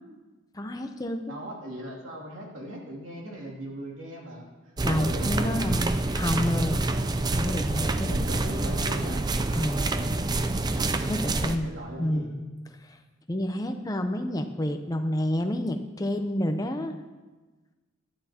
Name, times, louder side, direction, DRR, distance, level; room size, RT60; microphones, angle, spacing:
voice 1, 0.5-1.4 4.8-5.9 6.1-6.8 7.3-8.2 9.5-10.0 11.0-11.7 12.0-12.3 12.9-13.0 13.3-16.9, left 1 dB, 15° left, 6 dB, 0.6 m, -29 dB
voice 2, 1.3-4.5 4.9-5.7 7.9-9.2 11.3-12.3, equal, 70° right, -3 dB, 2.6 m, -39 dB
sound 1, 4.8-11.6, right 2 dB, 20° right, 0.4 m, -27 dB
15.5 x 11.5 x 2.9 m, 1.3 s
head